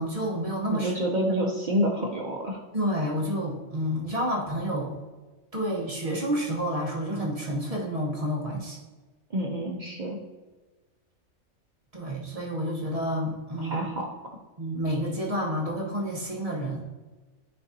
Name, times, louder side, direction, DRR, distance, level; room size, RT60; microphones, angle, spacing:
voice 1, 0.0-0.9 2.7-5.0 5.5-8.8 11.9-13.8 14.6-16.8, equal, 30° right, -3 dB, 1.0 m, -29 dB
voice 2, 0.7-2.6 9.3-10.2 13.6-14.1, equal, 50° right, 0 dB, 0.5 m, -28 dB
9.0 x 3.8 x 2.7 m, 1.2 s
omnidirectional pair, 1.4 m